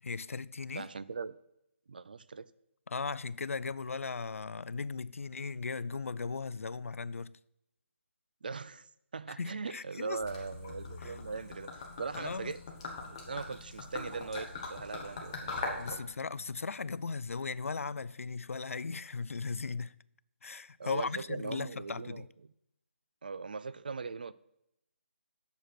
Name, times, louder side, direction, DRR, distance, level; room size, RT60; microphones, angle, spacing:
voice 1, 0.0-0.9 2.9-7.3 9.4-10.2 11.0-11.1 12.1-12.5 15.8-19.9 20.4-22.3, left 4 dB, 85° left, 0.4 m, -37 dB
voice 2, 0.8-1.4 1.9-2.5 8.4-8.9 9.1-11.7 12.0-12.6 13.1-16.0 20.8-22.3 23.2-24.3, right 4 dB, 40° right, 0.3 m, -40 dB
Gurgling / Liquid, 10.2-16.0, left 3 dB, 20° left, 1.1 m, -42 dB
8.2 x 6.4 x 5.9 m
hypercardioid pair, 175°, 7 cm